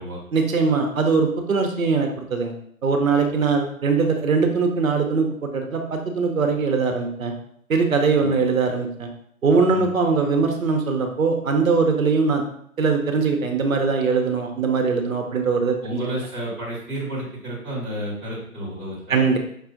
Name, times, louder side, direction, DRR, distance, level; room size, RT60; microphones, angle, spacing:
voice 1, 0.3-2.5 2.8-7.3 7.7-9.1 9.4-12.4 12.8-16.1 19.1-19.4, right 4 dB, 65° right, 3 dB, 0.9 m, -21 dB
voice 2, 15.8-19.3, equal, ahead, -13 dB, 1.0 m, -31 dB
5.4 x 2.4 x 3.8 m, 0.66 s
figure-of-eight pair, 150°, 44 cm